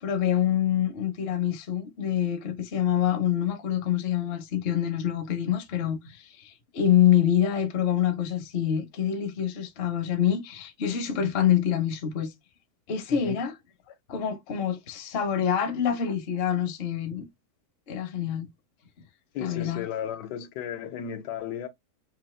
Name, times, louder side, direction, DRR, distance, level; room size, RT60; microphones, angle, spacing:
voice 1, 0.0-12.3 12.9-13.5 14.1-17.3 17.9-18.5 19.4-19.8, left 10 dB, 50° left, 0.7 m, -26 dB
voice 2, 19.3-21.7, left 8 dB, 85° left, 1.3 m, -34 dB
4.0 x 2.7 x 3.0 m
omnidirectional pair, 1.8 m